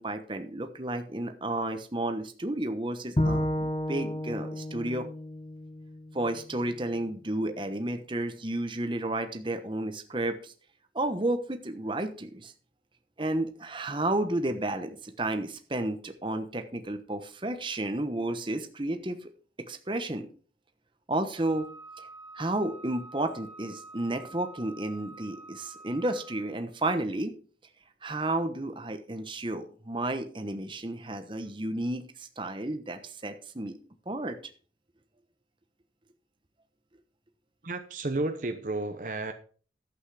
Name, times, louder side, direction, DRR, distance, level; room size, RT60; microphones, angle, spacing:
voice 1, 0.0-5.1 6.1-10.5 10.9-12.5 13.2-19.3 19.7-20.3 21.1-21.7 22.3-27.3 28.0-33.8 34.1-34.4, right 1 dB, 25° right, 7 dB, 1.1 m, -32 dB
Bowed string instrument, 3.2-6.4, left 1 dB, 30° left, 1.1 m, -31 dB
Wind instrument woodwind instrument, 21.3-26.6, right 2 dB, 45° left, 7.4 m, -48 dB
voice 2, 37.6-39.3, right 2 dB, 45° right, 7 dB, 0.9 m, -32 dB
11.5 x 8.3 x 4.9 m, 0.42 s
head